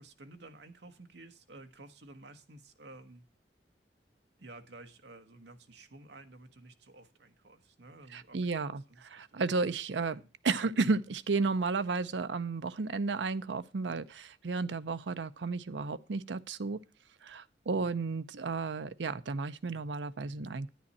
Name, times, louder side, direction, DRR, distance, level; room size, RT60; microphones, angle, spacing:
voice 1, 0.0-3.3 4.4-9.4 10.1-10.7 17.6-17.9, right 2 dB, 70° right, 1.2 m, -53 dB
voice 2, 8.1-16.8 17.2-20.7, right 4 dB, 90° right, 0.6 m, -33 dB
10.5 x 9.7 x 4.1 m
head